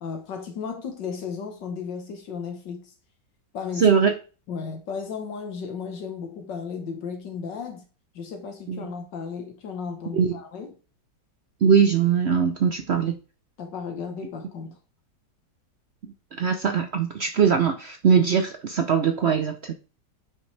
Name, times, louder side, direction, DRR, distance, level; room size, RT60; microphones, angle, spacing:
voice 1, 0.0-2.9 3.5-4.0 4.5-7.8 8.2-10.8 13.6-14.8, left 6 dB, 80° left, 1.8 m, -34 dB
voice 2, 3.8-4.1 8.7-8.8 10.1-10.4 11.6-13.2 16.4-19.7, right 7 dB, 65° right, 0.6 m, -21 dB
9.5 x 5.8 x 3.2 m
omnidirectional pair, 1.9 m